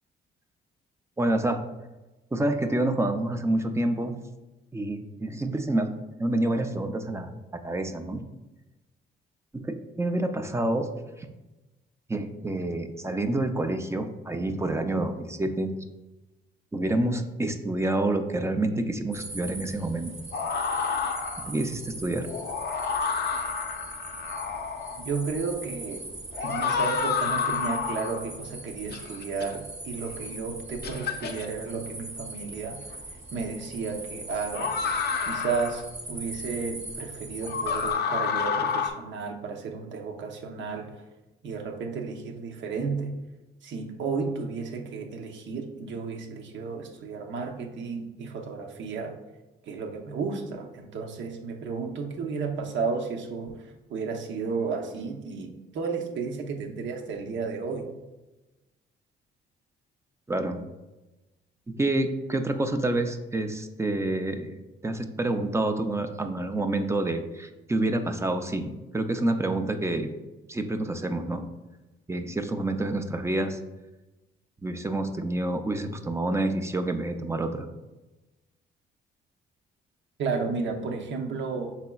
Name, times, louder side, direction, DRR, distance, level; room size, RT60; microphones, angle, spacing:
voice 1, 1.2-1.7 2.3-4.1 4.7-5.9 6.2-8.2 9.5-10.9 11.2-11.3 12.1-15.7 16.7-20.2 21.4-22.3 60.3-60.7 61.7-64.5 64.8-70.1 70.5-71.4 72.1-73.6 74.6-77.7, right 2 dB, 15° right, 7 dB, 0.4 m, -28 dB
sound 1, 19.1-37.9, right 2 dB, 30° right, 0.9 m, -41 dB
sound 2, 20.3-21.6 22.2-25.0 26.3-28.3 28.9-29.5 30.2-30.3 30.8-31.5 32.9-33.0 34.5-35.8 37.4-38.9, left 6 dB, 55° left, 0.5 m, -29 dB
voice 2, 25.0-26.1 26.4-32.9 33.3-41.0 41.4-43.2 43.6-49.2 49.6-57.9 80.2-81.7, right 4 dB, 70° right, 3 dB, 0.8 m, -33 dB
5.7 x 4.1 x 2.3 m, 1.1 s
cardioid pair, 90°, 20 cm